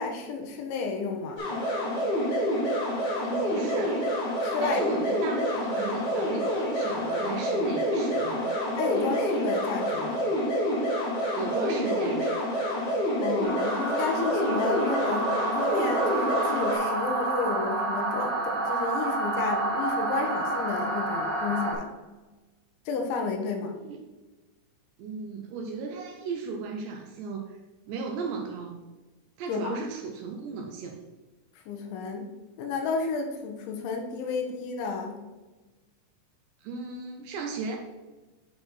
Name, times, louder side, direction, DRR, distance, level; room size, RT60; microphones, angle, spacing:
voice 1, 0.0-1.4 4.4-4.8 8.8-10.2 13.2-21.9 22.9-23.8 29.5-29.8 31.7-32.3 32.6-35.2, left 4 dB, 80° left, 4 dB, 3.2 m, -31 dB
sound 1, 1.4-16.8, equal, 50° left, 1.4 m, -28 dB
voice 2, 3.2-4.1 4.6-8.5 11.3-12.4 23.8-24.0 25.0-27.6 27.9-28.8 29.4-31.0 36.6-37.8, right 4 dB, 80° right, 3 dB, 2.6 m, -36 dB
sound 2, 13.4-21.7, right 2 dB, 25° right, 2.0 m, -29 dB
9.6 x 4.3 x 4.3 m, 1.2 s
omnidirectional pair, 5.5 m